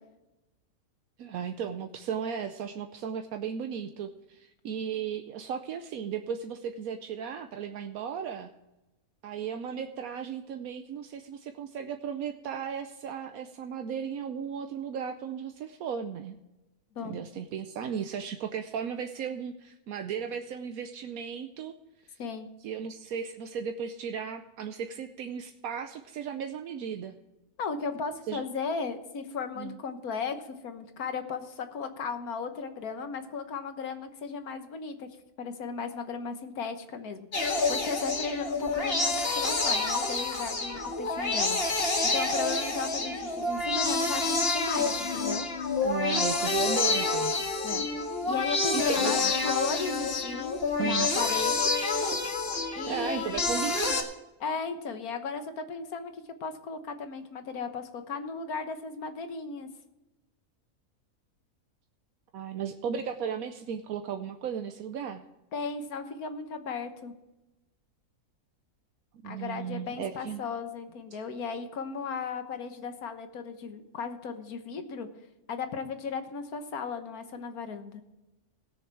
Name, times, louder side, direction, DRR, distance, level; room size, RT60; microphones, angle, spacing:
voice 1, 1.2-8.5 9.2-16.4 17.0-21.7 22.0-22.2 22.6-27.1 28.3-28.4 29.6-29.8 45.8-47.3 48.7-49.3 50.8-51.1 52.9-54.1 62.3-65.3 69.2-70.4, right 7 dB, 80° right, 6 dB, 1.1 m, -35 dB
voice 2, 27.6-35.1 35.4-41.6 42.0-45.5 47.3-47.8 48.2-49.2 49.4-51.7 52.7-53.5 54.4-56.1 56.4-59.7 65.5-67.1 69.2-75.1 75.5-78.0, left 5 dB, 80° left, 8 dB, 1.6 m, -36 dB
sound 1, 37.3-54.0, left 3 dB, 40° left, 1.8 m, -28 dB
18.5 x 6.6 x 4.7 m, 1.0 s
omnidirectional pair, 1.5 m